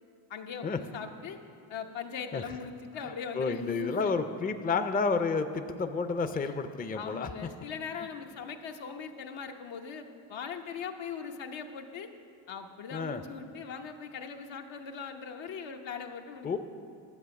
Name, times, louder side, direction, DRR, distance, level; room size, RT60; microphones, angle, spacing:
voice 1, 0.3-1.4 1.7-4.1 6.3-6.5 6.9-12.1 12.5-16.6, left 6 dB, 70° left, 4 dB, 1.0 m, -40 dB
voice 2, 3.3-7.3 12.9-13.2 16.4-16.6, left 4 dB, 20° left, 8 dB, 0.5 m, -30 dB
11.0 x 7.6 x 5.9 m, 2.5 s
cardioid pair, 75°, 47 cm